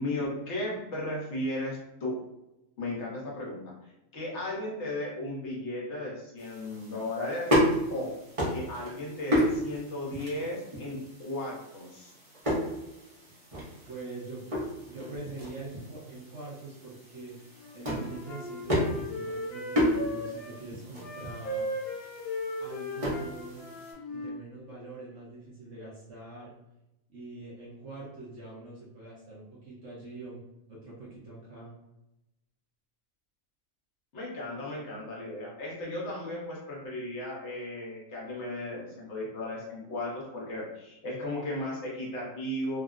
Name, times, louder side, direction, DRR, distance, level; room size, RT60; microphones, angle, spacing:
voice 1, 0.0-2.1 2.8-3.7 4.1-7.5 7.9-8.1 8.5-12.1 34.1-42.8, left 1 dB, 55° left, -4 dB, 1.2 m, -35 dB
sound 1, 6.4-23.9, equal, 30° right, 0.7 m, -33 dB
voice 2, 13.9-14.4 14.9-17.3 17.7-21.7 22.6-23.7 24.1-26.5 27.1-30.4 30.7-31.8, right 2 dB, 60° right, -7 dB, 1.1 m, -44 dB
Wind instrument woodwind instrument, 17.6-20.5 21.0-24.4, left 1 dB, 90° left, 1.1 m, -37 dB
3.5 x 2.0 x 2.4 m, 0.92 s
omnidirectional pair, 1.5 m